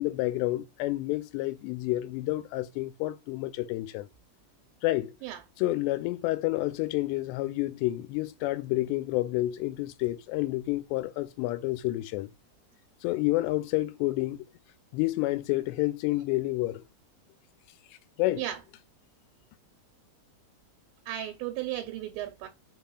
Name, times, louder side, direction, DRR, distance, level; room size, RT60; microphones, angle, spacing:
voice 1, 0.0-4.1 4.8-5.1 5.6-12.3 13.0-14.5 14.9-16.8 18.2-18.4, left 18 dB, 85° left, 2.6 m, -29 dB
voice 2, 21.1-22.5, right 13 dB, 85° right, 2.8 m, -34 dB
6.0 x 3.7 x 2.2 m
omnidirectional pair, 4.9 m